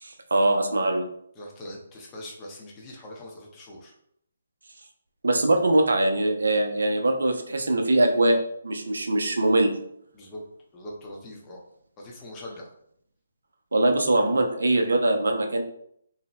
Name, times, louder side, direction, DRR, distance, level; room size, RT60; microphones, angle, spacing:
voice 1, 0.0-1.1 5.2-9.7 13.7-15.6, right 2 dB, 75° right, 4 dB, 0.4 m, -22 dB
voice 2, 1.4-3.9 10.1-10.4 10.7-11.6 12.0-12.7, left 1 dB, 20° left, -2 dB, 0.6 m, -42 dB
2.6 x 2.0 x 3.0 m, 0.70 s
figure-of-eight pair, 145°, 0 cm